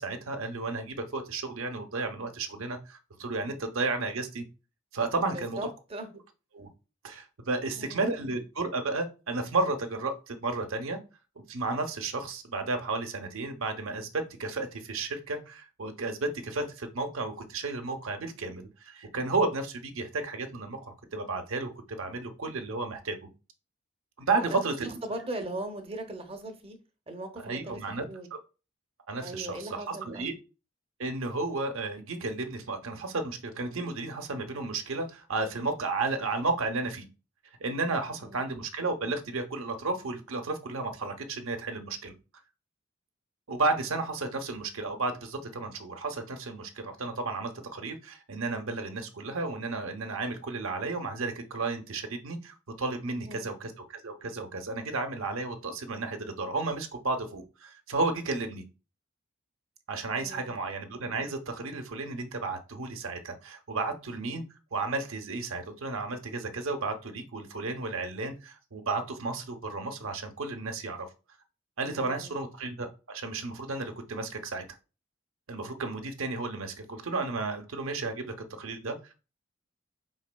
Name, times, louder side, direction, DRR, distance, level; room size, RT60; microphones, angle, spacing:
voice 1, 0.0-4.4 4.9-5.6 6.5-6.7 7.0-11.0 11.5-21.7 22.0-23.2 24.2-25.0 27.4-28.0 29.1-30.3 31.0-37.0 37.6-42.1 43.5-58.6 59.9-64.4 64.7-71.1 71.8-74.6 75.5-79.0, right 3 dB, 85° right, 0.7 m, -33 dB
voice 2, 5.3-6.1 7.6-8.1 24.3-26.8 27.1-28.3 29.2-30.3 38.1-38.5 53.2-53.5 60.1-60.5 71.9-72.4, right 1 dB, 30° right, 0.6 m, -39 dB
5.0 x 3.8 x 2.2 m
head